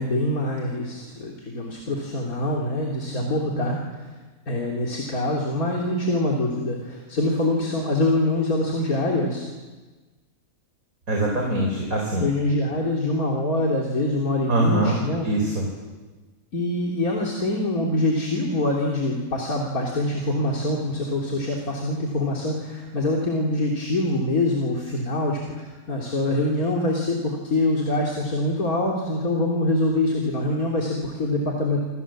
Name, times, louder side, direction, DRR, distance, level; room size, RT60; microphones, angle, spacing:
voice 1, 0.0-3.8 4.5-9.4 12.2-15.3 16.5-31.8, left 2 dB, 90° left, -1 dB, 3.8 m, -24 dB
voice 2, 11.1-12.3 14.5-15.7, right 2 dB, 70° right, 0 dB, 4.9 m, -23 dB
28.0 x 27.0 x 7.5 m, 1.3 s
omnidirectional pair, 1.5 m